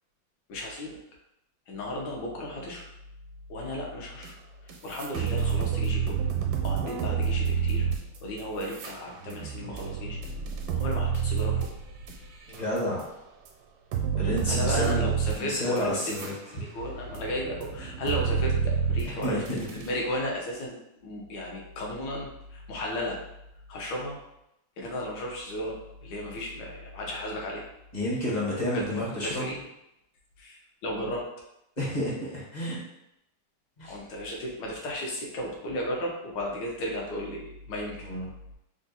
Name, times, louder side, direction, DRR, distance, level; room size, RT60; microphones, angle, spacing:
voice 1, 0.5-1.0 1.7-2.8 3.5-4.3 4.6-6.3 6.6-7.9 8.2-10.2 10.7-11.7 14.5-20.8 21.0-23.2 23.7-24.2 24.8-27.7 28.7-28.8 29.2-29.6 30.4-31.2 33.8-38.1, left 1 dB, 75° left, -1 dB, 1.5 m, -34 dB
sound 1, 4.2-4.3 4.7-13.0 13.5-13.6 13.9-16.3 16.7-20.0, right 7 dB, 85° right, 1.3 m, -29 dB
voice 2, 12.5-13.0 14.1-16.3 19.2-19.6 27.9-29.5 31.8-32.8 33.8-33.9 38.1-38.3, left 1 dB, 30° left, -5 dB, 0.9 m, -30 dB
3.6 x 2.4 x 4.0 m, 0.84 s
omnidirectional pair, 2.1 m